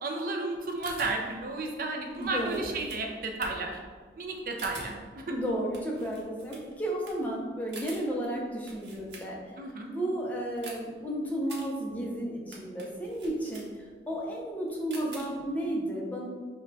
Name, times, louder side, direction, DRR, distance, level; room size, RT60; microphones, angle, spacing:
voice 1, 0.0-3.8 4.2-5.3 9.6-9.9, right 2 dB, 50° right, 2 dB, 0.5 m, -33 dB
sound 1, 0.5-9.7 10.0-15.7, right 3 dB, 75° right, 0.9 m, -48 dB
voice 2, 2.1-2.9 5.3-9.6 9.9-16.3, right 1 dB, 10° left, -3 dB, 0.6 m, -33 dB
5.3 x 2.3 x 4.0 m, 1.5 s
head